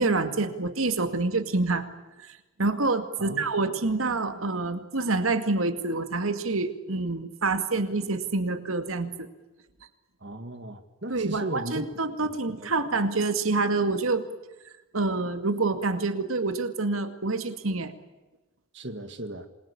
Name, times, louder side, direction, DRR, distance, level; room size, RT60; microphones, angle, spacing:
voice 1, 0.0-1.9 2.2-9.3 11.1-14.3 14.9-17.9, right 3 dB, 90° right, 2.2 m, -27 dB
voice 2, 3.2-3.5 10.2-11.8 12.2-12.3 12.6-12.7 18.7-19.5, right 1 dB, 60° right, 2.0 m, -36 dB
27.5 x 22.0 x 8.5 m
head